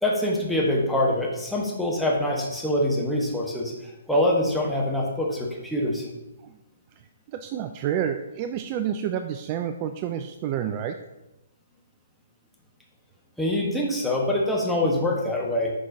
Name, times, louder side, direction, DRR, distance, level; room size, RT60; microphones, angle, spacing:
voice 1, 0.0-3.7 4.1-6.1 13.4-15.7, left 1 dB, ahead, -4 dB, 1.1 m, -24 dB
voice 2, 7.3-11.0, right 9 dB, 30° right, 8 dB, 0.3 m, -29 dB
10.5 x 4.3 x 2.7 m, 0.96 s
figure-of-eight pair, 130°, 0 cm